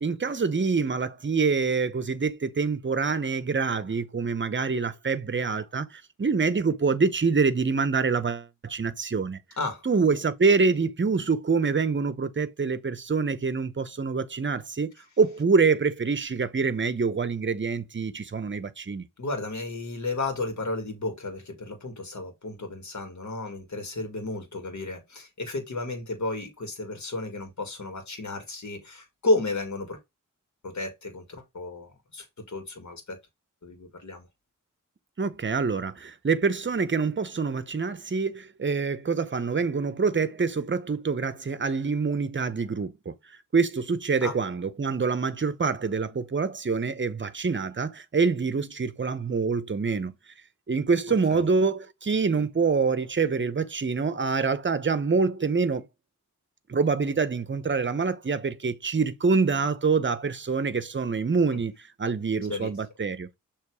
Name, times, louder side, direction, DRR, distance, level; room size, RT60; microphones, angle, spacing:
voice 1, 0.0-9.4 9.9-14.9 15.2-19.0 35.2-42.9 43.5-50.1 50.7-55.8 56.7-63.3, right 4 dB, 35° right, 0.8 m, -26 dB
voice 2, 19.2-30.0 30.6-33.2 33.6-34.3 44.2-44.3 51.3-51.4 62.5-62.7, left 2 dB, 60° left, 2.0 m, -32 dB
6.6 x 3.1 x 4.7 m
wide cardioid pair, 70°, 32 cm